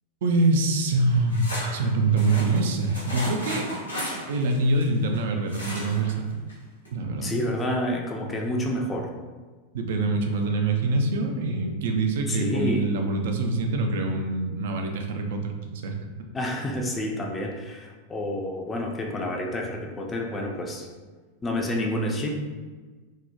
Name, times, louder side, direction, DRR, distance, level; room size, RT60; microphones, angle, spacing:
voice 1, 0.2-3.7 4.3-6.4 6.9-7.3 9.7-16.0, right 2 dB, 55° right, 3 dB, 0.3 m, -25 dB
sound 1, 0.9-5.2 5.5-6.1 6.5-6.6 6.8-6.9, equal, 80° left, 0.7 m, -35 dB
voice 2, 7.2-9.1 12.3-12.9 16.3-20.9 21.4-22.3, left 1 dB, 15° left, 1 dB, 0.4 m, -29 dB
2.8 x 2.0 x 2.3 m, 1.4 s
figure-of-eight pair, 90°, 0 cm